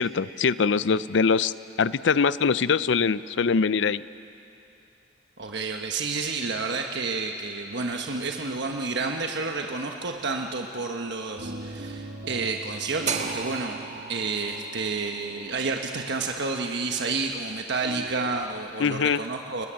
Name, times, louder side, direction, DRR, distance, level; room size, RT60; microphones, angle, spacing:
voice 1, 0.0-1.5 1.8-4.0 18.8-19.2, left 5 dB, 65° left, 16 dB, 0.5 m, -23 dB
voice 2, 5.4-13.8 14.1-19.7, right 3 dB, 65° right, 3 dB, 1.2 m, -30 dB
sound 1, 7.9-18.6, right 2 dB, 80° right, 3.4 m, -43 dB
sound 2, 13.1-17.2, right 5 dB, 35° right, 1.8 m, -36 dB
29.0 x 20.0 x 7.6 m, 2.8 s
head